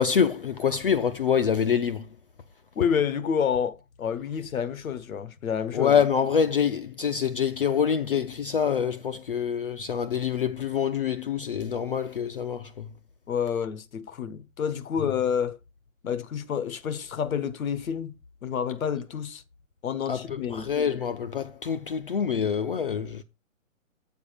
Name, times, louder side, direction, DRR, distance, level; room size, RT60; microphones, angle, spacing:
voice 1, 0.0-2.1 5.7-12.9 20.1-23.2, left 7 dB, 45° left, 0.4 m, -26 dB
voice 2, 2.8-5.9 13.3-15.6 16.0-18.1 18.4-19.4 19.8-20.7, left 7 dB, 85° left, 1.1 m, -29 dB
7.2 x 4.9 x 4.9 m
hypercardioid pair, 165°, 40 cm